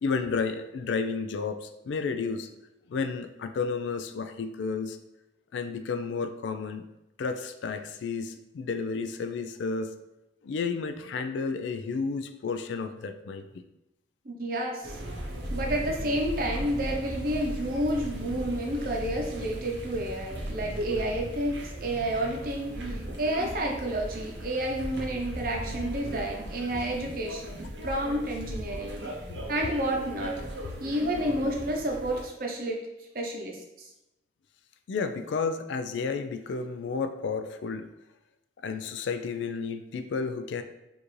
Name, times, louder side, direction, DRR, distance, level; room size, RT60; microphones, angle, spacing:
voice 1, 0.0-2.5 2.9-5.0 5.5-6.8 7.2-9.9 10.4-13.4 34.9-37.9 38.6-40.6, left 4 dB, 75° left, 9 dB, 0.3 m, -31 dB
voice 2, 14.2-15.0 15.5-29.1 29.5-30.4 30.8-32.9 33.1-33.9, right 1 dB, 50° right, 0 dB, 0.7 m, -30 dB
sound 1, 14.8-32.3, right 1 dB, 80° right, 0.9 m, -37 dB
4.7 x 2.6 x 3.1 m, 0.93 s
head